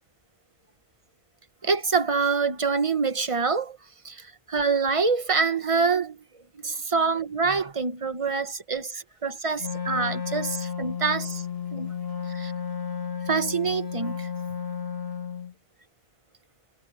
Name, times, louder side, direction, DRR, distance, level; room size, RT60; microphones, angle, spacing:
voice 1, 1.6-3.8 4.0-6.2 6.6-11.4 11.7-11.9 12.3-12.5 13.3-14.3, right 4 dB, 30° right, 0.9 m, -26 dB
Wind instrument woodwind instrument, 9.6-15.5, left 7 dB, 55° left, 1.8 m, -33 dB
omnidirectional pair, 1.3 m